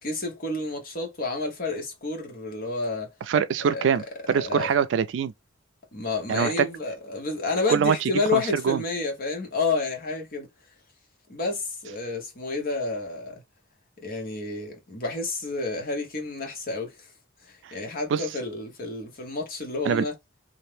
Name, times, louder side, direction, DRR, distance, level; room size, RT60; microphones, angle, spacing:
voice 1, 0.0-3.1 3.6-3.9 4.3-4.7 5.9-10.5 11.3-13.4 14.0-17.0 17.4-20.1, left 3 dB, 50° left, 1.0 m, -30 dB
voice 2, 3.3-5.3 6.3-6.7 7.7-8.0 8.3-8.8 18.1-18.2 19.8-20.0, right 7 dB, 70° right, 0.3 m, -23 dB
2.6 x 2.0 x 3.1 m
head